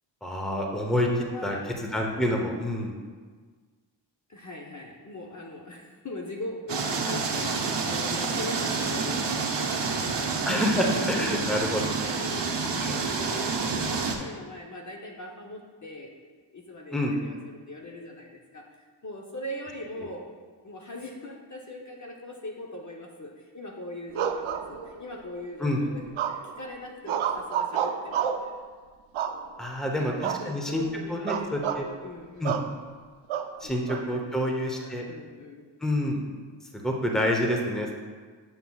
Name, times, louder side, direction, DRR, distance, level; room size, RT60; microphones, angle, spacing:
voice 1, 0.2-2.9 10.4-11.8 16.9-17.1 25.6-25.8 29.6-30.8 31.1-31.9 32.4-32.5 33.6-35.0 35.8-36.2 36.7-37.9, left 1 dB, ahead, 0 dB, 0.8 m, -27 dB
voice 2, 1.2-1.7 4.3-9.9 10.5-16.1 16.5-20.3 20.6-28.6 29.8-32.6 33.6-35.7, left 1 dB, 40° left, 0 dB, 0.7 m, -41 dB
sound 1, 6.7-14.1, right 4 dB, 60° right, 0.9 m, -28 dB
sound 2, 24.1-25.2 26.2-26.6 27.1-28.5 29.1-29.7 30.2-30.5 30.8-30.9 31.3-31.8 32.4-32.7 33.3-34.0, right 8 dB, 90° right, 0.5 m, -29 dB
7.9 x 7.0 x 2.3 m, 1.5 s
wide cardioid pair, 90°, 47 cm